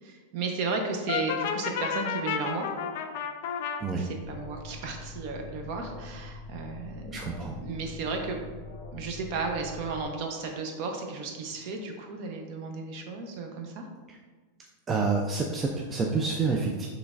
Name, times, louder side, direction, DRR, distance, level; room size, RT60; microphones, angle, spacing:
voice 1, 0.0-2.7 4.0-7.2 7.6-8.4 8.9-13.9, right 4 dB, 45° right, 3 dB, 0.7 m, -34 dB
Brass instrument, 1.1-3.8, left 7 dB, 60° left, 0.4 m, -31 dB
Alarm, 4.2-10.0, left 3 dB, 35° left, 1.4 m, -43 dB
voice 2, 7.1-7.6 14.1-14.2 14.9-16.9, right 4 dB, 15° right, 0 dB, 0.3 m, -28 dB
6.1 x 3.2 x 2.4 m, 1.3 s
supercardioid pair, 160°, 0 cm